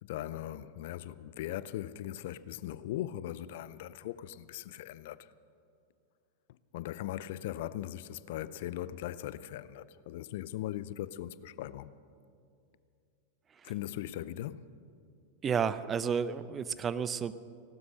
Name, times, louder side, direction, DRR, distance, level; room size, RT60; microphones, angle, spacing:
voice 1, 0.0-5.3 6.7-11.9 13.6-14.6, left 13 dB, 60° left, 0.5 m, -39 dB
voice 2, 15.4-17.3, right 7 dB, 25° right, 0.6 m, -31 dB
17.5 x 12.5 x 6.7 m
figure-of-eight pair, 95°, 0 cm